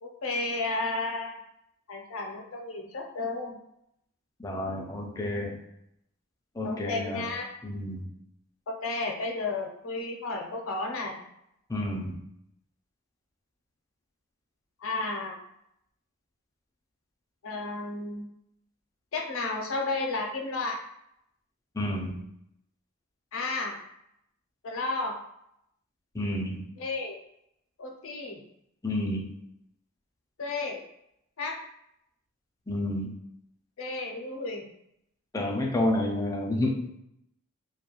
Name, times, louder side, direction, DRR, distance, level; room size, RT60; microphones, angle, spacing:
voice 1, 0.0-1.3 1.9-3.6 6.6-7.5 8.7-11.2 14.8-15.4 17.4-18.3 19.1-20.8 23.3-23.8 24.6-25.2 26.8-27.2 27.8-28.4 30.4-30.8 31.4-31.6 33.8-34.6, left 3 dB, 65° left, 1 dB, 0.5 m, -32 dB
voice 2, 4.4-5.6 6.6-7.3 7.6-8.1 11.7-12.2 21.7-22.2 26.1-26.6 28.8-29.3 32.7-33.1 35.3-37.0, left 1 dB, 15° left, 0 dB, 0.3 m, -30 dB
2.3 x 2.1 x 2.9 m, 0.76 s
head